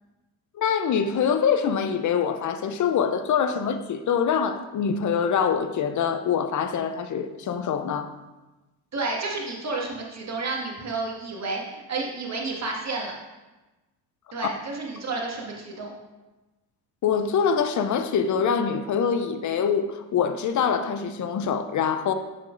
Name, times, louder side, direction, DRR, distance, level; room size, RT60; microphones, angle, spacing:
voice 1, 0.5-8.1 14.4-14.5 17.0-22.1, left 7 dB, 40° left, 8 dB, 0.6 m, -24 dB
voice 2, 8.9-13.1 14.3-15.9, right 3 dB, 35° right, -1 dB, 1.8 m, -31 dB
7.5 x 5.9 x 2.5 m, 1.1 s
hypercardioid pair, 65°, 48 cm